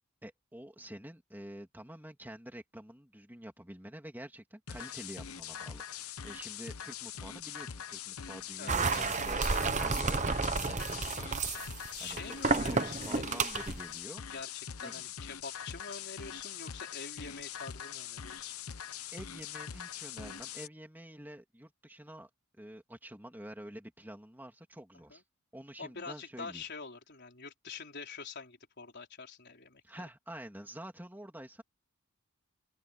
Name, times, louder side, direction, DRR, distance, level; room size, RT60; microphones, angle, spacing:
voice 1, 0.2-11.3 12.0-14.2 14.8-15.0 19.1-22.3 22.6-25.2 25.5-26.6 29.8-31.6, right 1 dB, 10° right, 2.9 m, -48 dB
sound 1, 4.7-20.7, left 8 dB, 85° left, 1.0 m, -43 dB
voice 2, 8.6-9.6 12.0-13.5 14.3-18.5 25.1-25.2 25.8-30.0, left 4 dB, 50° left, 4.4 m, -46 dB
sound 2, 8.7-13.8, right 4 dB, 35° right, 1.0 m, -31 dB
open air
head